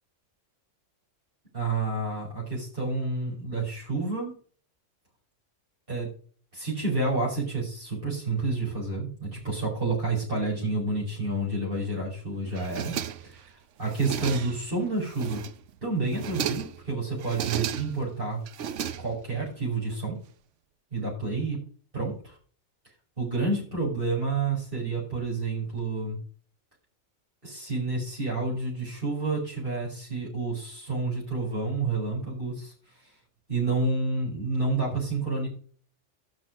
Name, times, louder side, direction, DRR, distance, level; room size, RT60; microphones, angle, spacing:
voice 1, 1.5-4.3 5.9-6.1 6.5-13.0 13.2-15.4 15.8-18.4 19.0-20.2 20.9-21.6 21.9-22.4 23.2-26.2 27.4-33.1 33.5-35.5, right 3 dB, 45° right, -6 dB, 6.0 m, -29 dB
sound 1, 12.6-13.4 13.8-14.7 15.1-15.7 16.1-16.8 17.2-18.1 18.5-19.4, right 9 dB, 75° right, 1.1 m, -34 dB
12.5 x 6.8 x 5.3 m, 0.43 s
omnidirectional pair, 1.3 m